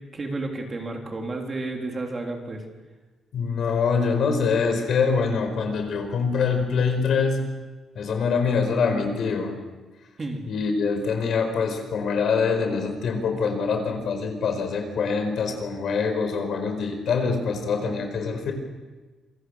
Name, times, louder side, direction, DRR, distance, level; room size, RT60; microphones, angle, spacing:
voice 1, 0.1-2.6 10.2-10.4, right 2 dB, 25° right, 2 dB, 3.3 m, -31 dB
voice 2, 3.3-7.4 7.9-9.6 10.5-18.5, left 5 dB, 55° left, 6 dB, 4.8 m, -24 dB
27.5 x 23.5 x 6.5 m, 1.2 s
cardioid pair, 165°, 0 cm